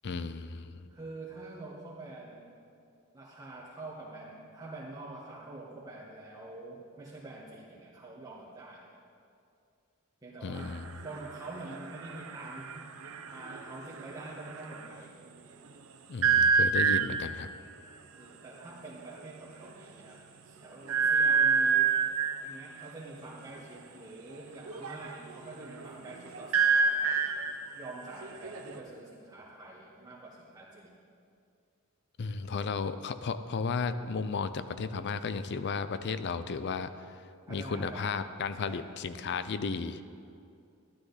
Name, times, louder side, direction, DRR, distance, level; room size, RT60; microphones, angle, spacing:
voice 1, 0.0-0.9 10.4-11.0 16.1-17.5 32.2-37.1 37.5-40.0, left 4 dB, 55° left, 12 dB, 0.5 m, -34 dB
voice 2, 0.9-2.5 3.1-8.9 10.2-12.8 13.3-15.1 18.2-21.9 22.4-27.3 27.7-31.0 37.5-38.2 38.5-38.9, right 2 dB, 20° right, -8 dB, 1.5 m, -46 dB
sound 1, 10.6-15.0 16.2-17.4 18.6-18.7 19.0-19.2 19.6-19.7 20.9-22.5 24.6-28.8, right 5 dB, 85° right, 0.9 m, -28 dB
12.5 x 12.0 x 4.1 m, 2.5 s
head